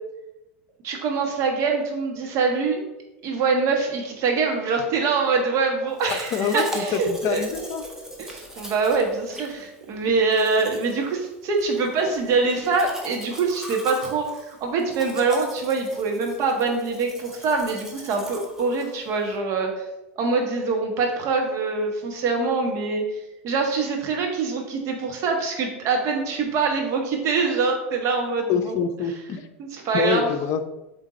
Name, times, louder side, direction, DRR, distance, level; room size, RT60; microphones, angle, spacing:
voice 1, 0.8-2.8 3.2-7.8 8.2-19.8 20.2-28.8 29.6-30.4, right 4 dB, 50° right, 2 dB, 1.5 m, -24 dB
Domestic sounds home sounds, 6.0-19.4, equal, 5° right, 1.3 m, -41 dB
voice 2, 6.1-7.8 28.5-29.5 29.9-30.6, left 7 dB, 45° left, 9 dB, 0.6 m, -26 dB
7.5 x 3.4 x 4.1 m, 0.97 s
hypercardioid pair, 80°, 7 cm